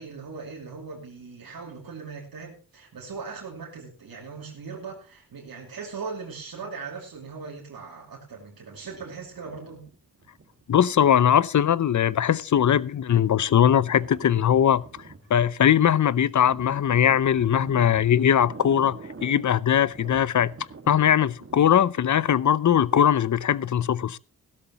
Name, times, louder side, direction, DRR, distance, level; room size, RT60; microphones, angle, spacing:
voice 1, 0.0-9.9, right 5 dB, 80° right, 2.7 m, -39 dB
sound 1, 8.7-10.9 11.5-22.3, right 4 dB, 40° right, 1.9 m, -46 dB
voice 2, 10.7-14.8 15.3-20.5 20.9-24.2, left 9 dB, 55° left, 0.6 m, -20 dB
16.0 x 12.5 x 2.9 m
wide cardioid pair, 105°, 35 cm